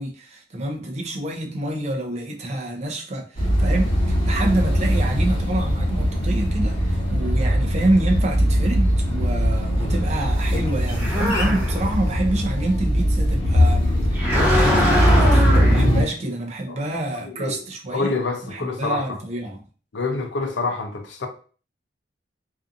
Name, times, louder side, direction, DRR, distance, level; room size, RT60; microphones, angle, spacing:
voice 1, 0.0-3.9 4.2-13.8 14.2-18.1 18.5-19.6, right 1 dB, 35° right, 0.5 m, -27 dB
sound 1, 3.4-16.0, equal, 30° left, 1.0 m, -20 dB
sound 2, 10.9-12.0 14.1-15.8, left 1 dB, 10° right, 0.9 m, -22 dB
voice 2, 17.2-17.6 17.9-19.2 19.9-21.3, left 3 dB, 65° left, 0.5 m, -27 dB
2.6 x 2.4 x 2.5 m
head